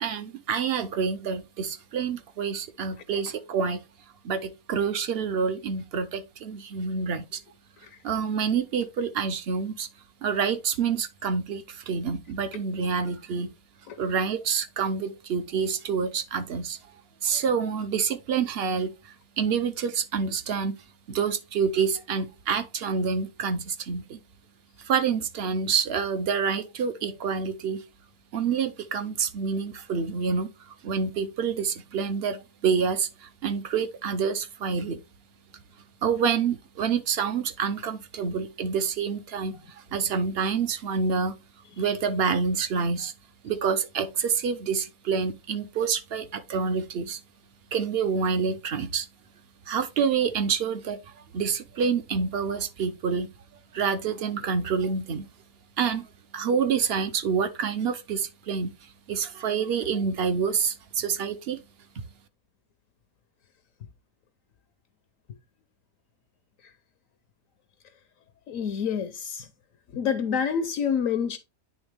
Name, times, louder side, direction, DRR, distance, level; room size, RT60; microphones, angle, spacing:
voice 1, 0.0-3.8 4.2-7.4 8.0-9.9 10.2-13.5 14.0-16.8 17.2-20.7 21.1-24.2 24.8-27.8 28.3-30.5 30.8-35.0 36.0-39.6 39.9-41.4 41.8-43.1 43.4-47.2 47.7-49.1 49.7-51.0 51.3-53.3 53.7-55.2 55.8-56.1 56.3-58.7 59.1-61.6, right 6 dB, 55° right, 0.8 m, -27 dB
voice 2, 68.5-69.5 69.9-71.4, left 7 dB, 70° left, 1.0 m, -27 dB
9.6 x 3.4 x 3.4 m
omnidirectional pair, 1.5 m